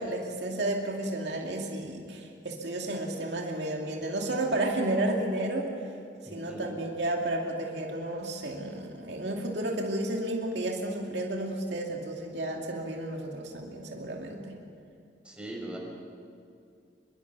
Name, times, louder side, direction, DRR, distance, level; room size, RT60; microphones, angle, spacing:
voice 1, 0.0-5.9 6.3-14.6, right 1 dB, 75° right, 0 dB, 2.6 m, -32 dB
voice 2, 6.2-6.7 15.2-15.8, right 1 dB, 5° right, -2 dB, 5.6 m, -40 dB
26.5 x 22.5 x 6.2 m, 2.4 s
head